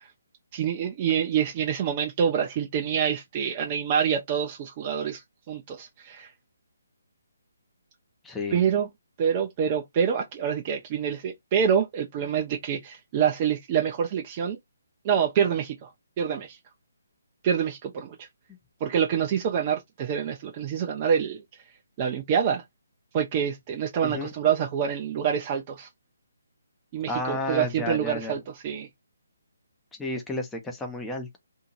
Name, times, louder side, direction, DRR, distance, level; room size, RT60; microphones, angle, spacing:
voice 1, 0.5-5.2 5.5-6.3 8.5-8.9 9.2-14.6 15.0-15.9 16.2-16.6 17.4-18.2 18.8-21.4 22.0-22.6 23.1-25.9 26.9-28.9, right 8 dB, 30° right, 0.6 m, -26 dB
voice 2, 8.2-8.7 24.0-24.3 27.1-28.4 30.0-31.4, left 2 dB, 5° left, 0.8 m, -32 dB
2.8 x 2.7 x 2.5 m
figure-of-eight pair, 145°, 0 cm